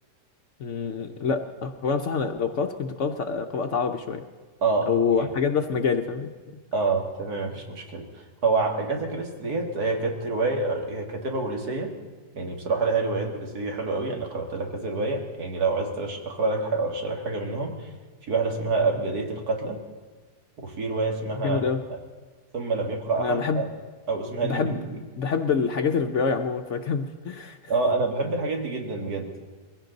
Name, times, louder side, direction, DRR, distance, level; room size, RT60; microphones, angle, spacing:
voice 1, 0.6-4.2 4.9-6.3 21.4-21.8 23.2-23.6 24.4-24.8 25.2-27.6, left 5 dB, 55° left, 6 dB, 0.9 m, -26 dB
voice 2, 4.6-4.9 6.7-8.1 8.4-11.9 12.3-17.7 18.2-19.8 20.6-21.6 22.5-23.7 24.1-25.0 27.7-29.3, right 3 dB, 65° right, 2 dB, 2.4 m, -27 dB
22.0 x 16.0 x 3.9 m, 1.4 s
omnidirectional pair, 1.7 m